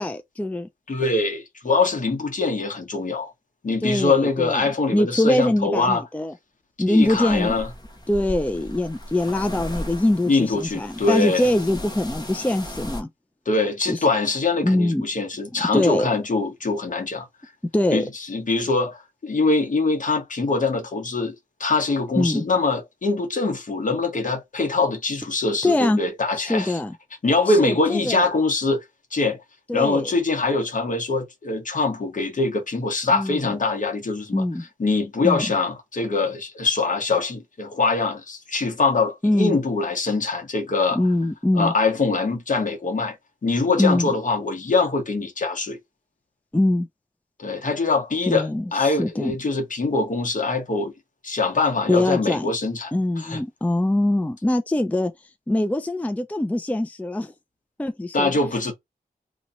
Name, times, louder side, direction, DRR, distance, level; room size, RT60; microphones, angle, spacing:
voice 1, 0.0-0.7 3.8-6.3 6.8-7.6 8.1-13.1 13.9-14.1 14.6-15.1 15.7-16.1 17.7-18.1 22.2-22.5 25.6-26.0 26.4-26.9 27.5-28.3 29.7-30.1 33.1-33.5 34.3-34.6 35.2-35.5 39.2-39.6 40.9-41.7 43.8-44.1 46.5-46.9 48.3-49.3 51.9-52.5 52.9-55.1 55.5-57.3 57.8-58.3, left 1 dB, 10° left, 0.4 m, -23 dB
voice 2, 0.9-3.3 3.6-6.0 6.9-7.7 10.3-11.4 13.4-17.2 17.9-21.3 21.6-26.8 27.2-28.8 29.1-29.4 29.7-34.4 34.8-41.0 41.5-43.2 43.4-45.8 47.4-50.9 51.2-52.9 53.2-53.4 58.1-58.7, left 3 dB, 60° left, 1.4 m, -23 dB
sound 1, 7.0-13.0, left 1 dB, 25° left, 1.1 m, -36 dB
2.8 x 2.8 x 3.9 m
wide cardioid pair, 95°, 15 cm